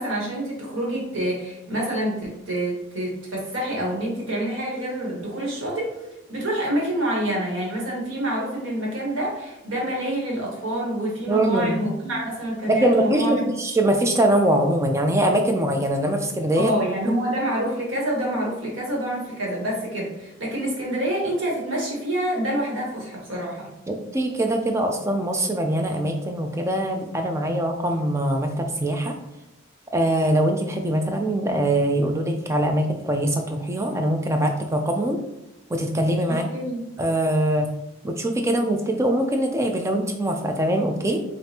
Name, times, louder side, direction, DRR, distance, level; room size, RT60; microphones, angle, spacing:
voice 1, 0.0-6.0 6.3-13.5 16.6-23.7 36.3-36.8, right 1 dB, 70° right, -3 dB, 1.4 m, -27 dB
voice 2, 11.3-11.9 12.7-16.7 17.0-17.2 23.9-29.2 29.9-35.2 35.7-36.5 37.0-37.7 38.0-41.2, right 1 dB, 15° right, 4 dB, 0.4 m, -22 dB
5.0 x 2.5 x 2.8 m, 0.93 s
head